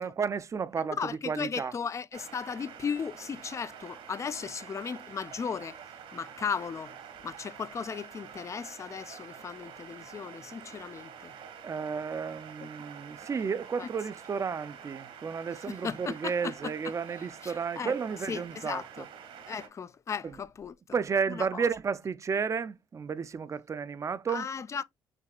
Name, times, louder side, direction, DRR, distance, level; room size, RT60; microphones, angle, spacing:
voice 1, 0.0-1.8 11.6-19.1 20.2-20.4 20.9-24.5, right 6 dB, 35° right, 0.5 m, -32 dB
voice 2, 1.0-5.8 6.1-7.0 7.2-11.3 12.6-12.7 13.8-13.9 15.7-16.7 17.4-17.9 18.3-19.1 19.5-20.7 21.3-21.7 24.3-24.8, left 6 dB, 35° left, 0.4 m, -36 dB
sound 1, 2.1-19.7, right 8 dB, 75° right, 1.3 m, -47 dB
6.0 x 2.8 x 2.3 m
cardioid pair, 85°, 9 cm